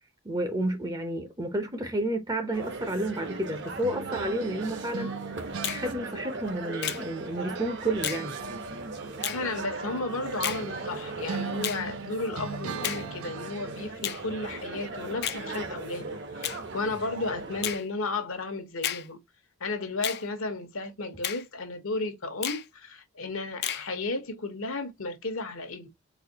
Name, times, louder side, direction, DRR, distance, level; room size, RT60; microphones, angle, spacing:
voice 1, 0.2-5.1 5.7-8.4, right 1 dB, 15° right, 0.6 m, -31 dB
sound 1, 2.5-17.8, right 3 dB, 55° right, 0.8 m, -38 dB
sound 2, 3.8-7.3 7.5-13.9, right 6 dB, 80° right, 0.5 m, -41 dB
Finger snapping, 5.6-5.9 6.8-7.0 8.0-8.3 9.2-9.4 10.4-10.6 11.6-11.8 12.8-13.1 14.0-14.2 15.2-15.4 16.4-16.6 17.6-17.8 18.8-19.1 20.0-20.2 21.2-21.4 22.4-22.7 23.6-23.9, left 11 dB, 50° left, 0.4 m, -32 dB
voice 2, 9.3-19.2 19.6-25.9, left 3 dB, 75° left, 1.1 m, -34 dB
4.1 x 2.3 x 2.8 m
head